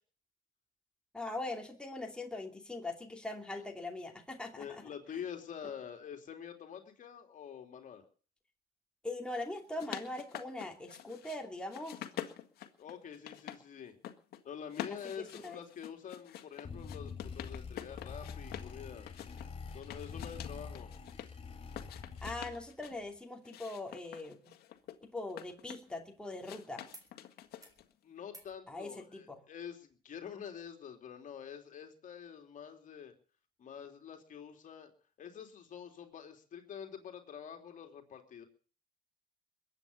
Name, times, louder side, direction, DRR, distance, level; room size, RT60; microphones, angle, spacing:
voice 1, 1.1-4.8 5.1-5.2 9.0-12.0 14.9-15.6 22.2-24.4 25.0-26.8 28.7-29.4, left 2 dB, 5° left, 1 dB, 2.8 m, -41 dB
voice 2, 4.6-8.0 12.8-13.9 14.4-19.1 19.7-20.9 28.0-33.1 33.6-34.9 35.2-38.4, left 8 dB, 50° left, 4 dB, 3.2 m, -46 dB
sound 1, 9.5-11.4 11.7-13.6 13.9-14.4 14.7-18.7 19.1-21.3 21.7-23.0 23.4-26.0 26.4-27.9, left 11 dB, 70° left, 1.8 m, -46 dB
sound 2, 16.6-22.7, left 5 dB, 35° left, 6.7 m, -45 dB
sound 3, 24.7-26.5 26.9-27.1 27.4-27.8 28.3-28.6 29.9-30.0, right 2 dB, 20° right, 4.2 m, -59 dB
22.0 x 9.0 x 6.8 m, 0.42 s
cardioid pair, 110°, 17 cm